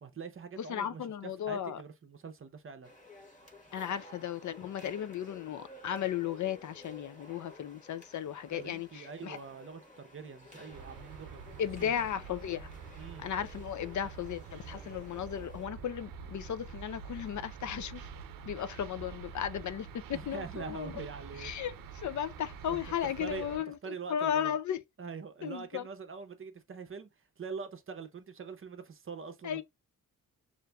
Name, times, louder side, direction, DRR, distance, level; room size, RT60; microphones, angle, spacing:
voice 1, 0.0-2.9 8.5-11.4 11.8-11.9 13.0-13.3 20.1-21.5 22.7-24.6 25.0-27.1 27.4-29.6, right 5 dB, 40° right, 0.7 m, -44 dB
voice 2, 0.6-1.8 3.7-9.4 11.6-12.7 13.2-18.1 18.5-21.1 21.4-24.8 25.4-25.9 29.4-29.6, left 9 dB, 60° left, 0.5 m, -35 dB
sound 1, 2.8-15.7, left 1 dB, 25° left, 1.3 m, -54 dB
sound 2, 10.7-23.6, right 6 dB, 85° right, 0.6 m, -47 dB
6.5 x 2.6 x 2.2 m
wide cardioid pair, 110°, 33 cm